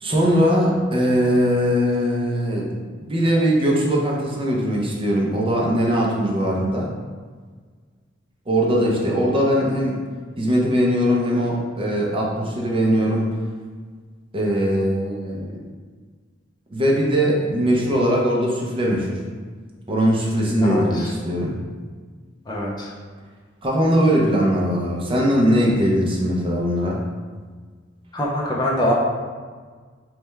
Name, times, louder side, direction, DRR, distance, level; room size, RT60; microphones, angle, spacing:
voice 1, 0.0-2.7 3.0-6.9 8.5-10.0 10.4-13.4 14.3-15.7 16.7-19.2 19.9-21.6 23.6-27.0, equal, 30° right, -2 dB, 0.6 m, -20 dB
voice 2, 20.6-21.1 22.5-22.9 28.1-29.0, equal, 20° left, -3 dB, 0.5 m, -23 dB
3.3 x 3.1 x 3.3 m, 1.6 s
head